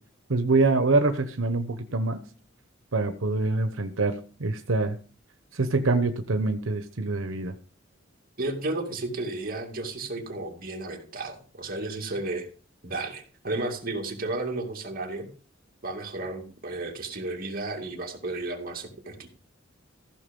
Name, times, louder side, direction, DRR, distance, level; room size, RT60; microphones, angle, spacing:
voice 1, 0.3-2.2 2.9-5.0 5.5-7.5, right 3 dB, 90° right, 8 dB, 0.9 m, -25 dB
voice 2, 8.4-12.5 12.8-15.3 15.8-19.3, right 2 dB, 45° right, 2 dB, 2.4 m, -33 dB
15.0 x 6.0 x 5.3 m, 0.40 s
head